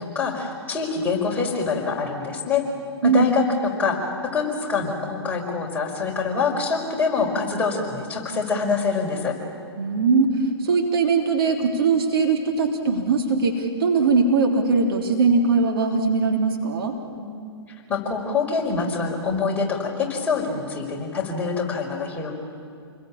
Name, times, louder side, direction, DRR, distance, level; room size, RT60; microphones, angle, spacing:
voice 1, 0.0-2.7 3.0-9.4 17.1-17.3 17.9-22.3, left 4 dB, 10° left, -3 dB, 5.4 m, -25 dB
voice 2, 9.8-10.4 10.6-16.9, right 4 dB, 60° right, 1 dB, 3.6 m, -20 dB
28.5 x 22.0 x 8.8 m, 2.3 s
figure-of-eight pair, 120°, 14 cm